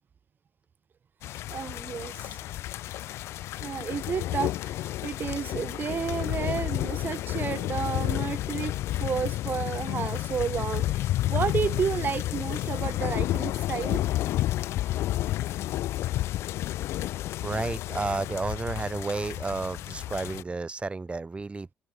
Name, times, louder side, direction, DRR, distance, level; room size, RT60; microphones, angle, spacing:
sound 1, 1.2-20.4, left 14 dB, 75° left, 1.0 m, -31 dB
voice 1, 1.5-2.5 3.6-14.1, right 7 dB, 45° right, 2.1 m, -32 dB
voice 2, 17.4-21.7, right 3 dB, 25° right, 4.1 m, -32 dB
open air
supercardioid pair, 70°, 5 cm